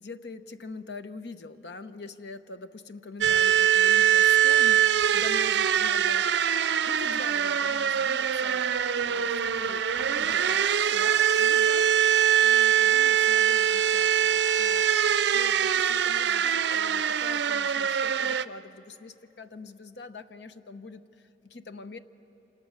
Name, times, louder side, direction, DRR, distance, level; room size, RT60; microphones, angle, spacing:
voice 1, 0.0-9.8 10.2-14.9 15.3-21.0 21.4-22.0, left 3 dB, 80° left, 10 dB, 0.9 m, -44 dB
sound 1, 3.2-18.4, right 9 dB, 85° right, 0.5 m, -23 dB
28.0 x 27.0 x 6.6 m, 3.0 s
head